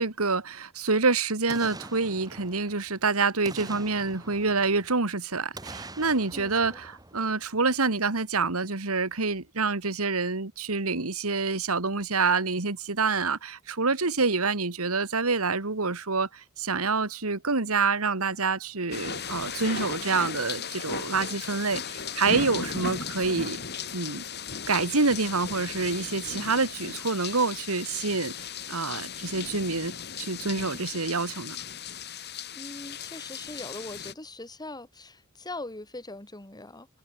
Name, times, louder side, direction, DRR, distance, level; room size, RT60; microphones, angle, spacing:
voice 1, 0.0-23.6 23.9-24.2 24.7-31.6, right 4 dB, 85° right, 2.1 m, -27 dB
Boom, 1.5-3.0 3.4-5.1 5.5-7.8 8.2-8.3, right 2 dB, 20° right, 3.0 m, -44 dB
voice 2, 6.3-6.8 32.5-36.9, left 2 dB, 20° left, 3.1 m, -41 dB
sound 1, 18.9-34.1, left 6 dB, 50° left, 5.8 m, -36 dB
head